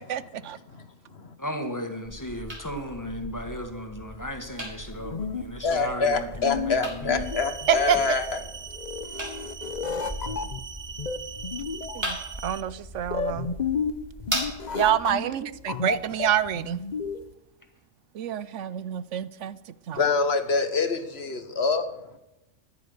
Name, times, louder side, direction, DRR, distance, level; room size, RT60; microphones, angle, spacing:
voice 1, 0.1-0.6 7.7-8.2 11.9-12.2 12.4-13.6 14.7-16.8 18.1-19.6 19.9-20.0, right 10 dB, 85° right, 1.0 m, -27 dB
voice 2, 1.4-7.2 15.1-15.8, equal, 15° left, 1.8 m, -35 dB
sound 1, 2.0-15.0, right 1 dB, 20° right, 3.5 m, -39 dB
sound 2, 4.8-17.3, left 5 dB, 40° left, 0.9 m, -33 dB
voice 3, 5.6-8.4 19.9-21.9, left 4 dB, 60° left, 1.4 m, -25 dB
sound 3, 7.2-12.6, right 7 dB, 50° right, 1.0 m, -41 dB
14.0 x 10.5 x 6.6 m
omnidirectional pair, 1.2 m